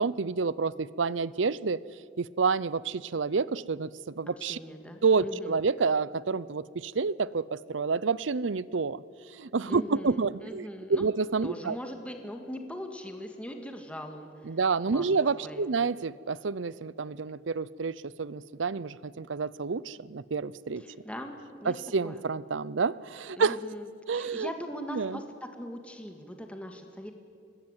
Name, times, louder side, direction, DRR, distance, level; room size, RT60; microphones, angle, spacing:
voice 1, 0.0-1.8 2.2-4.6 5.0-9.0 9.3-11.8 14.4-20.8 21.6-23.6 24.1-24.5 24.9-25.2, right 4 dB, 85° right, 20 dB, 0.6 m, -29 dB
voice 2, 4.2-5.6 9.7-11.0 11.4-14.6 14.9-15.1 15.4-15.7 20.8-21.7 22.0-22.2 23.4-23.9 24.1-27.1, equal, 5° left, 4 dB, 1.9 m, -40 dB
24.5 x 20.0 x 9.0 m, 2.5 s
head